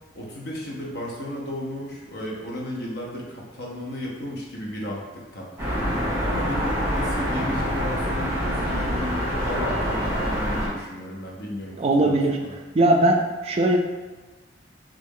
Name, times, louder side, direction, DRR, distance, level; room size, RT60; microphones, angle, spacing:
voice 1, 0.1-12.6, left 1 dB, 60° left, -2 dB, 0.8 m, -34 dB
sound 1, 5.6-10.7, equal, 15° right, 1.2 m, -25 dB
voice 2, 11.8-12.4 12.7-13.8, right 1 dB, 35° right, 1 dB, 0.4 m, -19 dB
3.1 x 2.4 x 3.6 m, 1.2 s
head